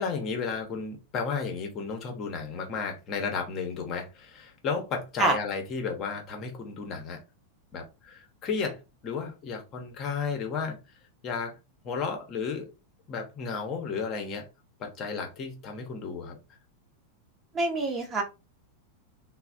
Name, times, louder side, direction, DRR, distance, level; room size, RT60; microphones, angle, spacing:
voice 1, 0.0-7.2 7.7-10.8 11.2-11.6 11.8-12.7 13.1-14.5 14.8-16.4, left 5 dB, 30° left, 0.8 m, -33 dB
voice 2, 17.5-18.2, right 2 dB, 20° right, 0.8 m, -25 dB
3.1 x 2.1 x 2.5 m
figure-of-eight pair, 90°, 0 cm